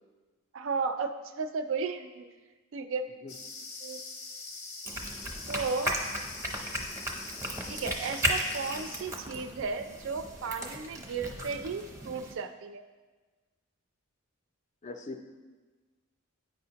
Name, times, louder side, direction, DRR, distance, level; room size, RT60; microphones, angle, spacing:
voice 1, 0.5-2.3 2.7-3.1 3.8-4.0 5.5-6.0 7.7-12.8, right 4 dB, 60° right, 8 dB, 0.3 m, -34 dB
sound 1, 3.3-9.0, left 3 dB, 85° left, 1.0 m, -43 dB
sound 2, 4.9-12.3, right 1 dB, 15° right, 0.6 m, -35 dB
voice 2, 14.8-15.2, left 3 dB, 35° left, 6 dB, 0.4 m, -40 dB
9.3 x 5.0 x 2.8 m, 1.3 s
head